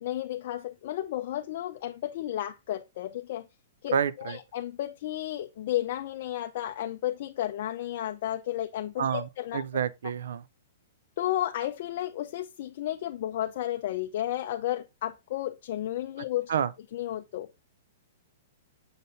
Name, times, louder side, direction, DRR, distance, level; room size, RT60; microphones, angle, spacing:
voice 1, 0.0-3.4 3.8-9.6 11.2-16.5 16.9-17.5, left 13 dB, 50° left, 0.5 m, -33 dB
voice 2, 3.9-4.4 9.0-9.2 9.5-10.4 16.5-16.7, right 8 dB, 75° right, 0.4 m, -28 dB
6.7 x 4.1 x 3.8 m
hypercardioid pair, 160°, 0 cm